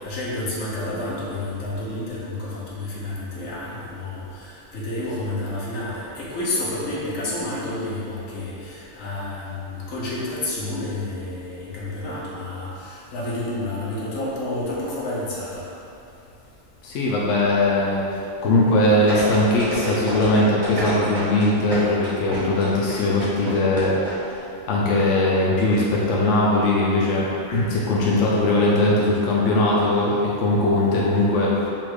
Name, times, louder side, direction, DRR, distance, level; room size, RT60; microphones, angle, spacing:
voice 1, 0.0-15.6, left 2 dB, 85° left, -6 dB, 1.3 m, -30 dB
voice 2, 16.8-24.4 24.7-31.7, left 1 dB, 70° left, -5 dB, 0.9 m, -20 dB
sound 1, 19.1-24.1 24.4-24.5, right 1 dB, 35° right, 1.3 m, -29 dB
4.2 x 2.4 x 4.6 m, 2.7 s
omnidirectional pair, 1.3 m